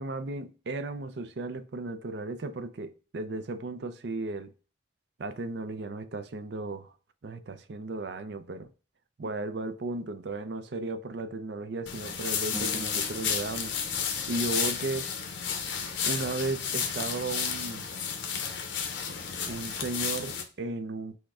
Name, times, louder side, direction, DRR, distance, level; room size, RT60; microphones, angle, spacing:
voice 1, 0.0-4.5 5.2-6.9 7.2-8.7 9.2-13.7 14.3-15.1 16.0-17.9 19.5-21.2, right 2 dB, 65° right, 0.5 m, -35 dB
sound 1, 11.9-20.4, left 7 dB, 90° left, 0.8 m, -32 dB
sound 2, 12.5-15.8, equal, 15° right, 0.5 m, -45 dB
6.2 x 2.2 x 3.4 m
head